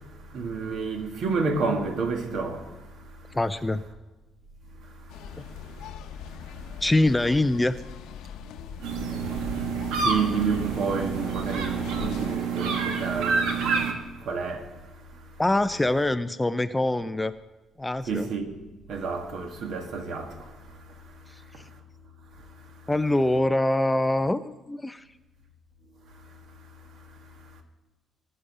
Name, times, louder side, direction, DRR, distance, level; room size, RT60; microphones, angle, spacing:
voice 1, 0.3-2.6 9.7-13.8 14.2-14.6 18.1-18.5 18.9-20.5, right 4 dB, 60° right, 1.8 m, -29 dB
voice 2, 3.3-3.8 5.4-5.5 6.8-7.7 15.4-17.3 17.8-18.3 22.9-25.0, left 1 dB, 10° left, 0.4 m, -24 dB
sound 1, 5.1-12.4, left 8 dB, 90° left, 0.9 m, -40 dB
sound 2, 8.8-13.9, right 5 dB, 90° right, 1.5 m, -28 dB
20.0 x 6.7 x 5.5 m
cardioid pair, 135°, 0 cm